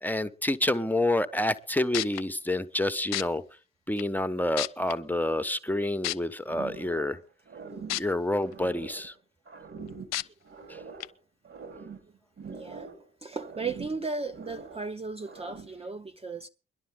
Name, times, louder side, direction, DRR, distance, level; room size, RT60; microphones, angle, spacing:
voice 1, 0.0-3.4 3.9-7.2 8.0-9.1 10.7-10.8, left 1 dB, 5° left, 1.0 m, -28 dB
sound 1, 1.6-1.7 1.9-2.2 3.1-3.2 4.0-4.1 4.6-4.9 6.0-6.1 7.9-8.0 8.5-8.6 10.1-10.2 11.0-11.1, left 15 dB, 60° left, 0.6 m, -29 dB
sound 2, 6.5-7.2 7.5-9.1 9.5-11.1 11.4-13.1 13.3-14.9 15.2-15.8, right 5 dB, 45° right, 2.8 m, -44 dB
voice 2, 12.4-12.9 13.2-16.5, right 4 dB, 20° right, 0.7 m, -36 dB
21.5 x 11.5 x 3.7 m
figure-of-eight pair, 40°, 30 cm